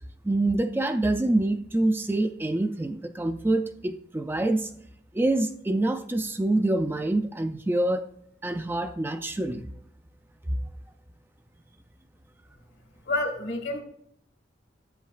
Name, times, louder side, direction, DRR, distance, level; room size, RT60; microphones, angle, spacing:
voice 1, 0.2-4.7 5.1-8.0 8.4-9.6 10.5-10.6, right 2 dB, 10° right, 8 dB, 0.4 m, -26 dB
voice 2, 13.1-13.8, left 2 dB, 65° left, 4 dB, 1.6 m, -28 dB
10.5 x 8.3 x 2.3 m, 0.69 s
head